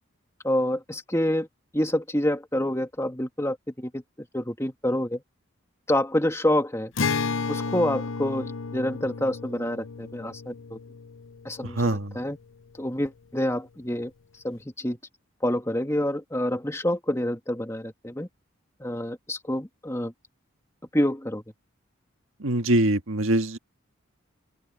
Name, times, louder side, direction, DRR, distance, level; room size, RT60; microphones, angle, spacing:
voice 1, 0.4-1.5 1.7-5.2 5.9-6.9 7.5-10.8 11.4-12.4 12.8-14.1 14.4-15.0 15.4-18.3 18.8-20.1 20.9-21.4, left 1 dB, 15° left, 2.2 m, -27 dB
Acoustic guitar, 7.0-12.4, left 4 dB, 70° left, 0.8 m, -32 dB
voice 2, 11.8-12.1 22.4-23.6, right 1 dB, 80° right, 1.7 m, -23 dB
open air
head